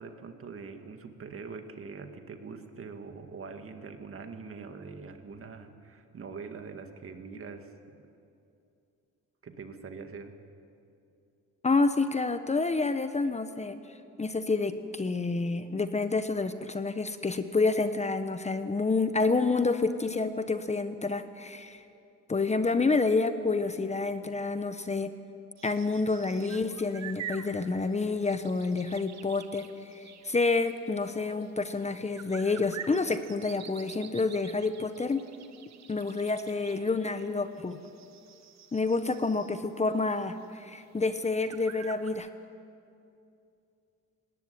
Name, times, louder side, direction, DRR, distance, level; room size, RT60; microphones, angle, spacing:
voice 1, 0.0-8.1 9.4-10.3, right 5 dB, 45° right, 6 dB, 2.1 m, -43 dB
voice 2, 11.6-13.8 14.2-21.8 22.3-25.1 25.6-35.2 35.9-37.8 38.7-42.3, left 3 dB, 20° left, 10 dB, 1.0 m, -28 dB
sound 1, 25.6-39.9 40.2-40.3 40.7-40.8 41.1-42.1, right 8 dB, 60° right, 1.5 m, -47 dB
18.5 x 18.5 x 9.8 m, 2.6 s
cardioid pair, 90°, 30 cm